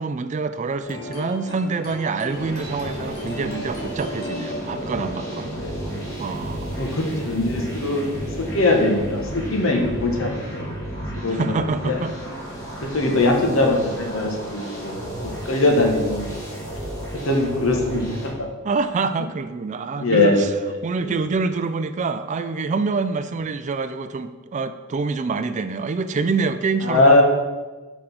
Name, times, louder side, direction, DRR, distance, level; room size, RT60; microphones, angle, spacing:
voice 1, 0.0-5.5 6.2-6.8 11.3-12.1 18.6-20.6 20.8-27.2, right 4 dB, 35° right, 11 dB, 0.3 m, -26 dB
sound 1, 0.8-6.3, left 1 dB, 45° left, 2.1 m, -35 dB
sound 2, 2.3-18.3, right 1 dB, 15° left, 2.2 m, -33 dB
voice 2, 6.8-8.0 8.4-10.6 11.2-12.0 12.8-16.4 17.1-18.3 20.0-21.2 26.8-27.2, left 2 dB, 65° left, 1 dB, 1.4 m, -21 dB
5.9 x 5.0 x 6.0 m, 1.3 s
head